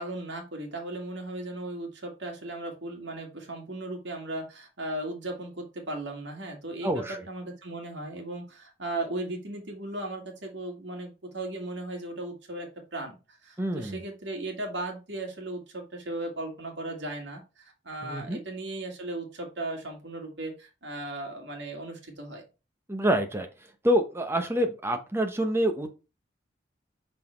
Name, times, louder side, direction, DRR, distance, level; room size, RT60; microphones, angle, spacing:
voice 1, 0.0-22.4, right 2 dB, 80° right, 2 dB, 2.2 m, -37 dB
voice 2, 6.8-7.2 13.6-14.0 18.0-18.4 22.9-23.5 23.8-25.9, equal, 15° right, 5 dB, 0.9 m, -27 dB
5.8 x 4.2 x 4.4 m, 0.30 s
head